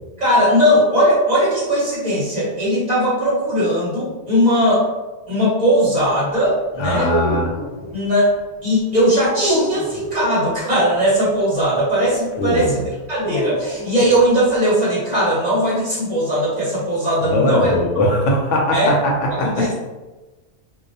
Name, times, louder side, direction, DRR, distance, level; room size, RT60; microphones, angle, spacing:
voice 1, 0.2-4.9 5.3-7.1 7.9-8.3 8.6-12.8 13.1-17.7 18.0-18.1 18.7-18.9 19.3-19.7, equal, 40° right, -8 dB, 0.8 m, -18 dB
voice 2, 6.8-7.5 12.4-12.8 17.3-19.1 19.4-19.5, left 1 dB, 85° left, 0 dB, 0.9 m, -19 dB
sound 1, 6.9-8.0 9.3-10.1 13.2-14.2, equal, 25° left, 0.8 m, -25 dB
2.3 x 2.0 x 2.6 m, 1.2 s
omnidirectional pair, 1.2 m